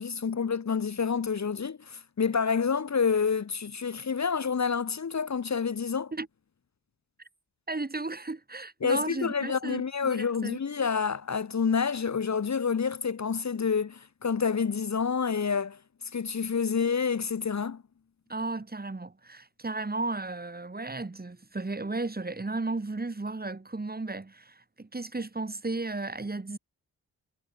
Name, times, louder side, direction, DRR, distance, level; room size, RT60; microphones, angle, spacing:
voice 1, 0.0-6.1 8.8-15.8 16.1-17.8, left 6 dB, 40° left, 1.6 m, -28 dB
voice 2, 7.7-10.6 18.3-26.6, right 3 dB, 20° right, 2.6 m, -34 dB
hypercardioid pair, 45°, 42 cm